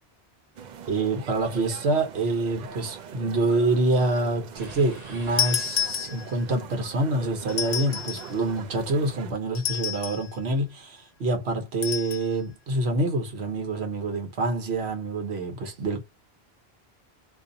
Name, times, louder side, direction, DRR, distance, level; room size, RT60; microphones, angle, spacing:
sound 1, 0.6-9.3, right 7 dB, 55° right, 0.6 m, -42 dB
voice 1, 0.9-16.0, right 2 dB, 90° right, 1.2 m, -26 dB
sound 2, 4.6-6.4, right 2 dB, 40° right, 1.1 m, -46 dB
sound 3, 5.4-6.5 7.5-8.3 9.5-10.3 11.8-12.3, left 9 dB, 45° left, 0.6 m, -29 dB
2.7 x 2.6 x 3.8 m
omnidirectional pair, 1.1 m